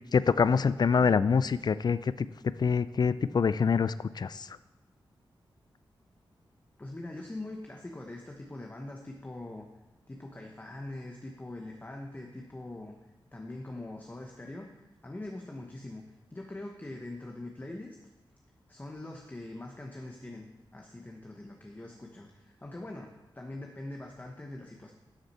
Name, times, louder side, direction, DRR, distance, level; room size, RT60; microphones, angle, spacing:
voice 1, 0.1-2.3 2.6-4.5, left 5 dB, 50° left, 15 dB, 0.4 m, -25 dB
voice 2, 6.8-9.7 10.1-12.9 13.3-18.0 18.7-24.9, left 2 dB, 20° left, 1 dB, 1.0 m, -43 dB
12.5 x 6.5 x 4.3 m, 1.1 s
wide cardioid pair, 85°, 9 cm